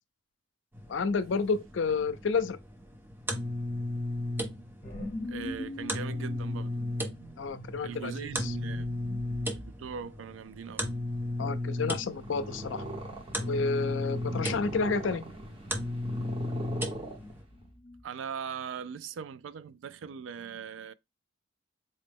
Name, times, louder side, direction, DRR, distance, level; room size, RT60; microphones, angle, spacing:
sound 1, 0.7-17.4, left 1 dB, 10° right, 0.6 m, -35 dB
voice 1, 0.9-2.6 7.4-8.5 11.4-12.8 13.4-15.2, left 4 dB, 75° left, 0.5 m, -30 dB
sound 2, 4.8-10.0 12.7-13.4 13.7-14.1 16.6-18.0, left 1 dB, 35° left, 0.9 m, -43 dB
voice 2, 5.2-6.8 7.8-8.9 9.6-10.9 18.0-20.9, right 7 dB, 80° right, 0.3 m, -40 dB
Purr, 12.0-17.7, right 1 dB, 30° right, 0.9 m, -41 dB
4.1 x 2.1 x 3.4 m
head